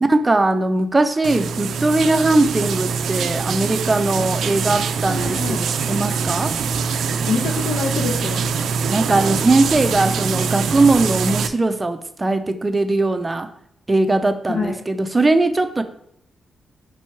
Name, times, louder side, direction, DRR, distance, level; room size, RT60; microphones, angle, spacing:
voice 1, 0.0-6.5 8.9-13.5 13.9-15.8, right 2 dB, 15° right, 9 dB, 0.4 m, -19 dB
sound 1, 1.2-11.5, right 5 dB, 80° right, 0.4 m, -23 dB
voice 2, 5.1-5.6 7.3-8.5 14.5-14.8, left 4 dB, 85° left, -1 dB, 0.9 m, -25 dB
5.3 x 4.5 x 4.5 m, 0.76 s
wide cardioid pair, 165°, 0 cm